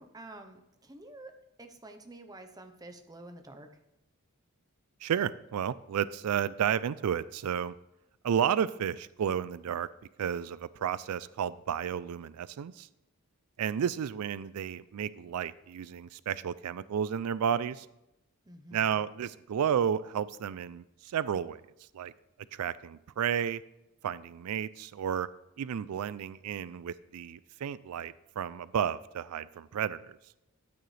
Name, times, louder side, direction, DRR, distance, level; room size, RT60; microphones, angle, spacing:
voice 1, 0.0-1.3 1.6-3.7 18.5-19.0, right 2 dB, 15° right, 6 dB, 0.8 m, -49 dB
voice 2, 5.0-7.7 8.2-9.9 10.2-12.9 13.6-17.9 18.7-21.6 21.9-22.1 22.5-23.6 24.0-25.3 25.6-30.2, right 8 dB, 90° right, 17 dB, 0.4 m, -32 dB
12.5 x 9.3 x 3.3 m, 0.89 s
head